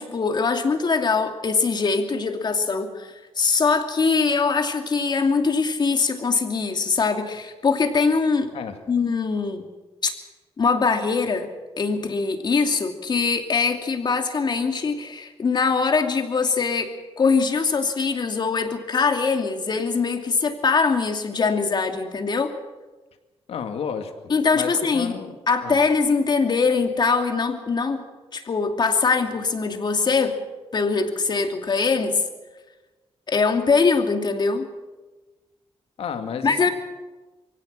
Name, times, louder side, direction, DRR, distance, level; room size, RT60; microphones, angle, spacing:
voice 1, 0.0-3.1 3.4-8.5 8.9-9.7 10.0-10.1 10.6-11.5 11.8-22.5 24.3-25.1 25.5-28.0 28.3-30.4 30.7-32.2 33.3-34.7 36.4-36.7, left 4 dB, 45° left, 5 dB, 2.6 m, -22 dB
voice 2, 23.5-24.1 24.5-25.4 25.6-25.8 36.0-36.7, left 6 dB, 80° left, 6 dB, 2.2 m, -31 dB
23.5 x 17.0 x 7.6 m, 1.2 s
cardioid pair, 95°, 10 cm